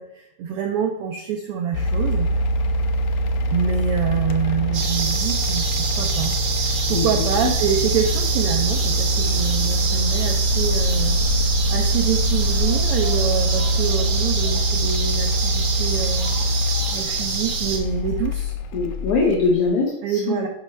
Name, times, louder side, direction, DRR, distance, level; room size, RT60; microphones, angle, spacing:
voice 1, 0.0-2.3 3.5-5.6 6.0-6.3 6.6-11.2 11.7-16.3 16.9-18.5 20.0-20.5, right 7 dB, 85° right, 4 dB, 1.3 m, -26 dB
sound 1, 1.7-19.5, equal, 80° left, 1.4 m, -23 dB
sound 2, 4.7-17.8, right 5 dB, 65° right, 2.2 m, -27 dB
voice 2, 6.9-7.2 18.7-20.5, left 4 dB, 60° left, -2 dB, 1.9 m, -22 dB
Speech, 12.3-15.7 16.2-17.3 17.6-17.7 18.0-18.1, equal, 50° right, 2.7 m, -43 dB
10.5 x 5.1 x 3.2 m, 0.85 s
omnidirectional pair, 3.3 m